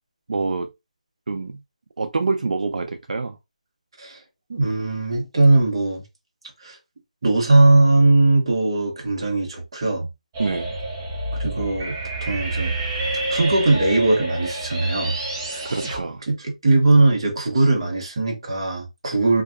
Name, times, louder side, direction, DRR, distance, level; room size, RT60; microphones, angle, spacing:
voice 1, 0.3-0.7 1.3-1.6 2.0-3.4 10.4-10.7 15.6-16.2, right 3 dB, 70° right, 0.3 m, -26 dB
voice 2, 4.5-6.0 6.6-6.8 7.2-10.1 11.3-12.7 13.3-15.2 15.5-15.6 16.3-19.4, right 2 dB, 40° right, 0.8 m, -19 dB
sound 1, 10.3-16.0, right 2 dB, 15° right, 0.5 m, -28 dB
2.6 x 2.2 x 2.3 m
hypercardioid pair, 175°, 4 cm